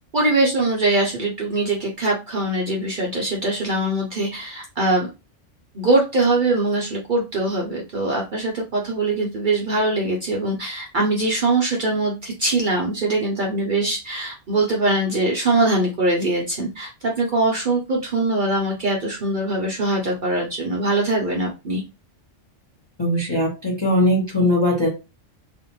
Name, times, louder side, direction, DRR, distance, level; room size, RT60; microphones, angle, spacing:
voice 1, 0.1-5.1 5.7-21.8, right 2 dB, 55° right, -2 dB, 0.6 m, -22 dB
voice 2, 23.0-24.9, left 1 dB, 30° left, -2 dB, 0.5 m, -20 dB
2.5 x 2.1 x 2.9 m, 0.28 s
omnidirectional pair, 1.3 m